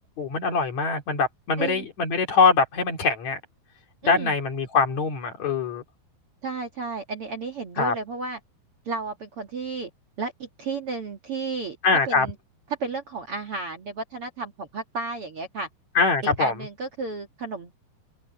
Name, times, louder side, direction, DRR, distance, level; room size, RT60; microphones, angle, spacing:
voice 1, 0.2-3.4 4.0-5.8 7.8-7.9 11.8-12.3 16.0-16.5, left 4 dB, 50° left, 3.6 m, -23 dB
voice 2, 4.0-4.4 6.4-8.4 8.9-9.9 10.2-11.8 12.1-12.3 12.8-15.7 16.2-17.7, right 4 dB, 50° right, 2.1 m, -33 dB
open air
omnidirectional pair, 4.3 m